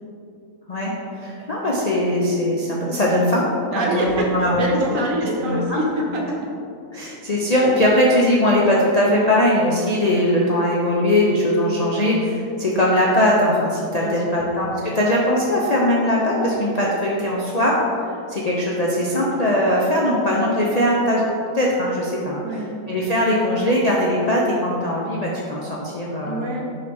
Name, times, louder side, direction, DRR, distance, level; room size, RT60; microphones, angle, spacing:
voice 1, 0.7-3.4 3.7-4.6 5.4-5.8 6.9-17.7 18.0-22.4 22.9-26.5, left 1 dB, 60° left, -4 dB, 0.4 m, -20 dB
voice 2, 3.7-6.3 14.0-14.4 22.4-22.7 26.2-26.6, right 1 dB, 60° right, -1 dB, 1.1 m, -25 dB
6.5 x 4.7 x 3.4 m, 2.5 s
omnidirectional pair, 1.7 m